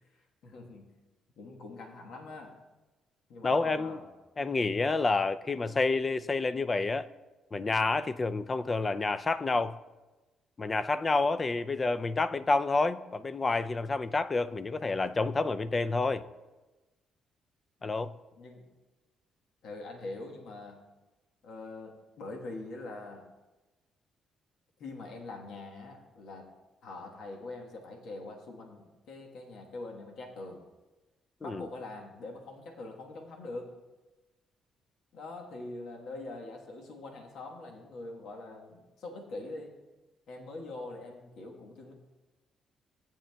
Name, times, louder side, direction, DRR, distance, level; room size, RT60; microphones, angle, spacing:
voice 1, 0.1-0.9 1.4-2.5 3.3-4.1 18.4-18.7 19.6-20.8 21.4-23.2 24.8-26.5 26.8-30.6 31.4-33.7 35.1-39.7 40.3-41.9, left 2 dB, 75° left, 1.3 m, -43 dB
voice 2, 3.4-4.0 4.4-7.1 7.5-9.8 10.6-16.2 17.8-18.1 31.4-31.6, left 3 dB, 30° left, 0.4 m, -29 dB
14.5 x 8.9 x 2.3 m
cardioid pair, 90°, 0 cm